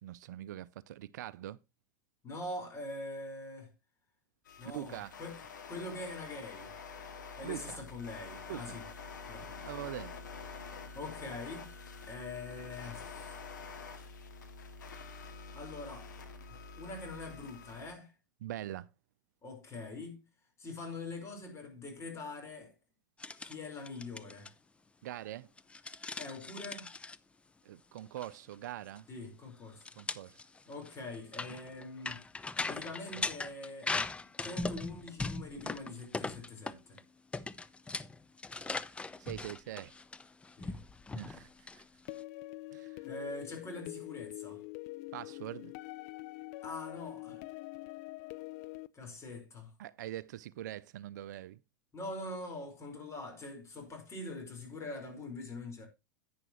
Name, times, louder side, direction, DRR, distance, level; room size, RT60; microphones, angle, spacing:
voice 1, 0.0-1.6 4.7-5.1 7.4-7.8 8.5-8.8 9.7-10.1 10.4-10.6 18.4-18.9 25.0-25.5 27.6-29.1 30.0-30.4 39.2-39.9 41.1-41.8 42.7-43.0 45.1-45.7 49.8-51.6, right 13 dB, 65° right, 0.5 m, -43 dB
voice 2, 2.2-3.7 4.6-5.4 5.7-6.7 7.4-8.8 9.3-9.5 10.9-11.7 12.1-13.4 15.5-16.1 16.5-18.1 19.4-20.2 20.6-22.7 23.4-24.5 26.2-26.9 29.1-29.9 30.6-32.2 32.6-33.9 34.4-37.0 40.6-40.8 43.0-44.6 46.6-47.4 48.9-49.7 51.9-55.9, left 2 dB, 30° left, 4.7 m, -43 dB
sound 1, 4.4-17.9, left 4 dB, 80° left, 2.1 m, -47 dB
sound 2, 23.2-23.5 23.8-24.5 25.6-27.2 28.0-28.3 28.5-28.6 29.0-29.1 29.8-37.0 37.3-42.2, left 3 dB, 10° left, 0.6 m, -39 dB
sound 3, 42.1-48.9, left 21 dB, 55° left, 0.5 m, -45 dB
10.5 x 9.4 x 3.0 m
hypercardioid pair, 95°, 10 cm